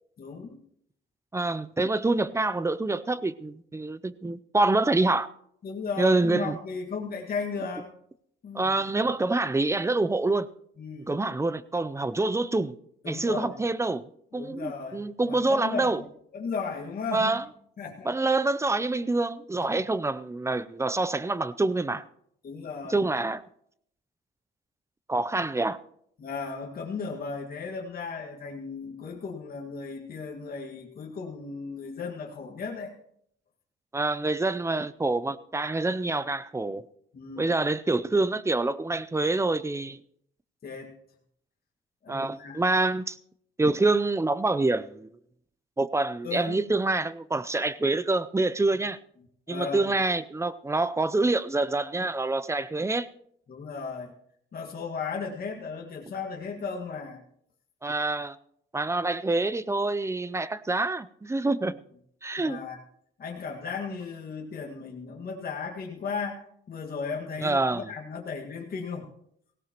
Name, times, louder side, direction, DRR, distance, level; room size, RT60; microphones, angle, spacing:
voice 1, 0.2-0.6 5.6-7.9 8.4-9.1 10.8-11.2 13.0-13.6 14.3-16.1 16.3-17.4 17.8-18.1 19.6-19.8 22.4-23.0 26.2-32.9 37.1-37.6 40.6-40.9 42.0-42.6 46.2-46.7 49.5-49.9 53.5-54.1 54.5-57.2 62.4-62.8 63.2-69.1, left 5 dB, 50° left, 1.8 m, -36 dB
voice 2, 1.3-5.3 6.0-6.6 8.5-10.5 11.0-12.8 13.0-16.0 17.1-17.4 18.0-22.0 22.9-23.4 25.1-25.8 33.9-36.8 37.4-40.0 42.1-43.2 43.6-45.1 45.8-49.0 49.5-53.1 57.8-58.4 58.7-61.8 62.2-62.6 67.4-67.9, right 2 dB, 15° right, 0.5 m, -26 dB
17.5 x 17.0 x 3.0 m
cardioid pair, 90°, 20 cm